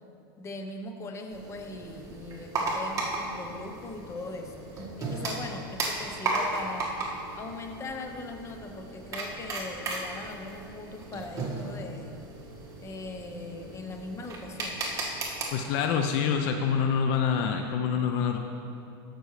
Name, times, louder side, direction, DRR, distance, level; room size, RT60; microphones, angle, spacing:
voice 1, 0.4-6.9 7.3-12.2 12.8-15.0, left 2 dB, 20° left, 4 dB, 0.8 m, -40 dB
sound 1, 1.3-15.4, right 2 dB, 25° right, 1.7 m, -35 dB
voice 2, 15.5-18.4, left 7 dB, 55° left, 5 dB, 0.6 m, -26 dB
15.0 x 6.2 x 3.2 m, 2.7 s
hypercardioid pair, 120°, 12 cm